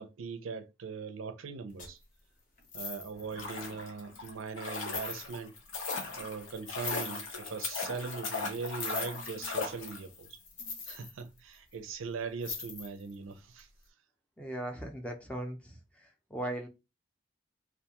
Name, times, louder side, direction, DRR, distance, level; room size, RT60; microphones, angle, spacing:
voice 1, 0.0-2.0 2.7-5.5 6.2-10.4 10.9-13.7, right 5 dB, 90° right, 0.4 m, -40 dB
sound 1, 1.8-2.0 2.6-3.3 4.1-4.2 4.8-5.6 6.6-7.5 8.8-9.6 10.4-11.7 12.4-13.1 13.6-13.7, left 5 dB, 40° left, 0.7 m, -41 dB
sound 2, 3.2-10.3 10.6-10.7, left 4 dB, 80° left, 0.8 m, -38 dB
voice 2, 14.4-15.8 16.3-16.7, right 1 dB, 5° left, 0.4 m, -37 dB
2.4 x 2.2 x 2.8 m
head